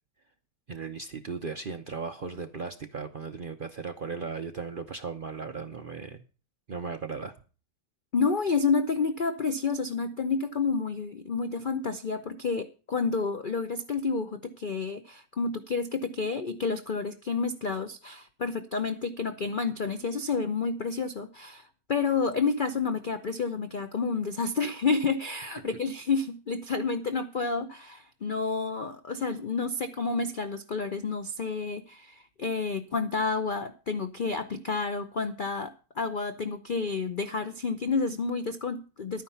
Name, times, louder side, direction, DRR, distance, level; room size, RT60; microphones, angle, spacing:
voice 1, 0.7-6.2 6.7-7.3, right 5 dB, 50° right, 6 dB, 0.6 m, -37 dB
voice 2, 8.1-39.2, left 4 dB, 90° left, 9 dB, 0.4 m, -30 dB
11.0 x 9.5 x 5.7 m, 0.36 s
omnidirectional pair, 1.9 m